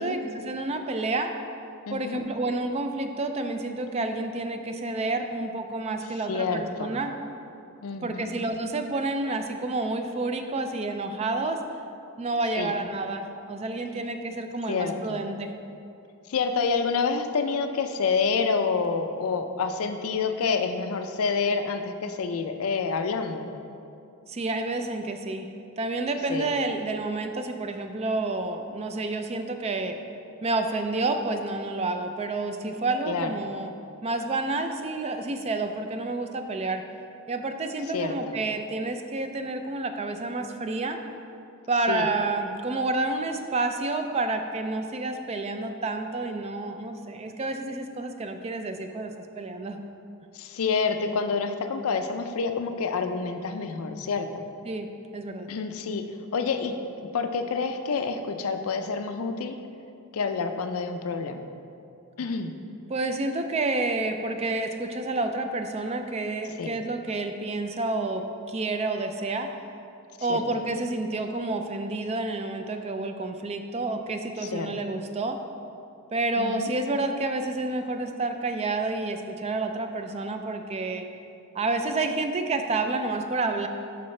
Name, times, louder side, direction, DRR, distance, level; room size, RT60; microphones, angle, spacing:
voice 1, 0.0-1.3 1.9-7.1 8.0-11.6 12.2-15.5 24.3-25.5 25.8-30.0 30.4-33.7 34.0-36.8 37.3-41.0 41.7-49.8 54.7-54.9 55.1-55.5 62.9-69.5 70.2-75.4 76.1-81.0 81.5-83.7, right 2 dB, 30° right, 6 dB, 0.3 m, -29 dB
voice 2, 1.9-2.2 6.3-6.9 7.8-8.3 12.5-12.7 14.7-15.2 16.3-23.5 26.3-26.5 33.1-33.3 37.9-38.3 41.9-42.0 50.3-54.4 55.5-56.0 56.3-59.6 60.1-61.4 62.2-62.5 66.6-66.7 70.3-70.4 74.5-74.7 76.4-76.7, left 5 dB, 70° left, 8 dB, 0.4 m, -28 dB
8.6 x 5.6 x 3.2 m, 2.6 s
head